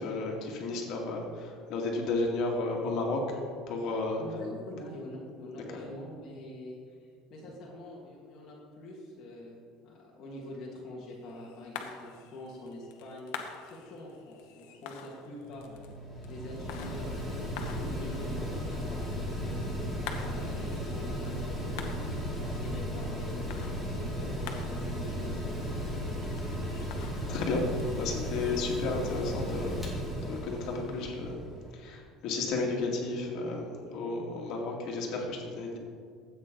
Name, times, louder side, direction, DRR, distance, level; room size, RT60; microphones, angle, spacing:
voice 1, 0.0-3.4 3.7-4.2 27.3-27.6 28.0-29.9 30.3-31.4 31.7-35.8, left 3 dB, 55° left, -1 dB, 2.2 m, -32 dB
voice 2, 4.2-6.8 7.3-13.3 13.6-15.9 16.3-19.7 20.1-21.8 22.4-25.7, left 1 dB, 35° left, -6 dB, 2.0 m, -45 dB
sound 1, 11.1-29.3, left 7 dB, 80° left, 1.1 m, -48 dB
Mechanical fan, 15.4-31.7, equal, 5° right, 2.1 m, -35 dB
13.0 x 8.5 x 3.9 m, 2.1 s
cardioid pair, 150°, 0 cm